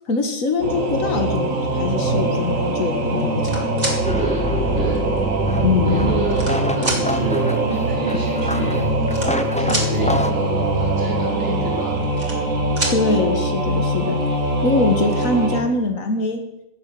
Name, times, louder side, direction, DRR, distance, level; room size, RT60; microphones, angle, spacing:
voice 1, 0.1-3.7 5.6-6.0 12.9-14.4 14.6-16.4, left 3 dB, 85° left, 4 dB, 2.1 m, -22 dB
Singing / Musical instrument, 0.6-15.6, right 1 dB, 80° right, 2.1 m, -22 dB
sound 1, 3.2-4.0 5.0-5.1 5.9-6.5 6.8-7.0 8.2-8.3 8.5-8.6 9.0-9.9 11.8-12.5 12.8-13.0 14.4-14.5 14.8-15.3, right 1 dB, 30° right, 3.0 m, -27 dB
sound 2, 4.0-10.3, equal, 5° left, 0.7 m, -27 dB
voice 2, 5.8-8.8 9.6-12.0, right 2 dB, 45° right, -5 dB, 2.8 m, -29 dB
16.5 x 7.1 x 7.7 m, 0.85 s
omnidirectional pair, 1.4 m